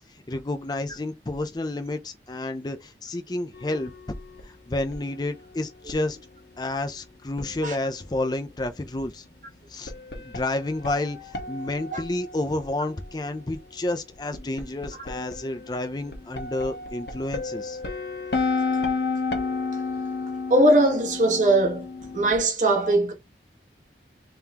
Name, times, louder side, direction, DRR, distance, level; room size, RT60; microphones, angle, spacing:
voice 1, 0.3-3.9 4.4-6.2 6.6-9.2 9.7-9.9 10.2-17.8, left 2 dB, 25° left, 0.4 m, -30 dB
sound 1, 3.5-4.4 4.9-6.0 7.4-7.7 9.9-13.5 14.3-22.4, left 4 dB, 65° left, 1.1 m, -32 dB
voice 2, 20.5-21.9 22.1-23.1, right 1 dB, 45° right, 1.1 m, -20 dB
3.6 x 3.5 x 2.8 m
head